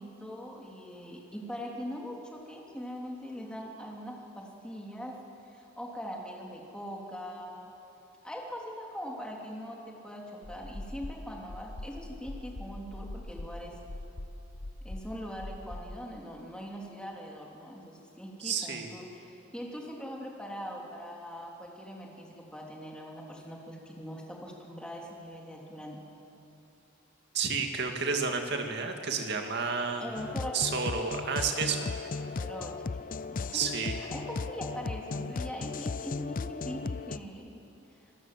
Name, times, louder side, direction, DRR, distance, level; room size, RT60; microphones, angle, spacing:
voice 1, 0.0-5.1 5.5-7.7 8.2-13.7 14.8-26.0 30.0-30.5 32.2-37.6, equal, 5° left, -1 dB, 3.0 m, -42 dB
sound 1, 10.4-16.0, left 1 dB, 70° left, 1.1 m, -42 dB
voice 2, 18.4-18.9 27.3-30.0 30.5-31.9 33.5-34.0, right 5 dB, 55° right, 4 dB, 2.2 m, -31 dB
sound 2, 30.2-37.2, left 4 dB, 40° left, 0.5 m, -36 dB
26.0 x 17.5 x 7.5 m, 2.8 s
head